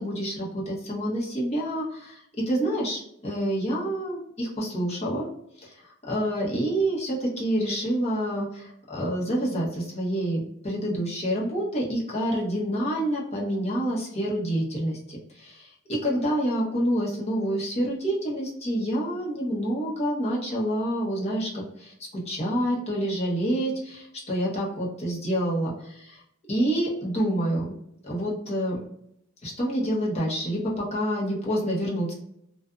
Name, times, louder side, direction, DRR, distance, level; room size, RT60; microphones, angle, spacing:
voice 1, 0.0-2.2 2.5-5.3 5.6-5.7 6.1-25.7 26.5-27.7 28.0-28.8 29.4-32.1, right 1 dB, 35° left, -5 dB, 1.0 m, -27 dB
2.5 x 2.4 x 2.3 m, 0.77 s
head